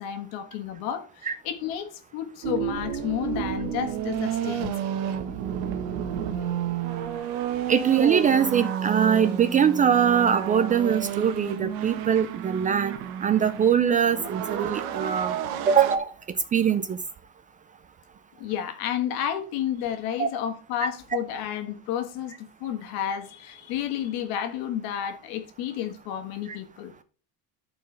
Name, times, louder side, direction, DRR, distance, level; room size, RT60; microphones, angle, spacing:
voice 1, 0.0-4.8 18.4-26.9, left 10 dB, 70° left, 1.6 m, -31 dB
sound 1, 2.4-16.0, right 9 dB, 75° right, 1.2 m, -31 dB
voice 2, 7.7-15.3 15.7-16.1 16.5-17.0 20.2-20.3 26.5-26.6, right 8 dB, 20° right, 0.4 m, -22 dB
13.0 x 4.4 x 3.3 m
cardioid pair, 145°, 38 cm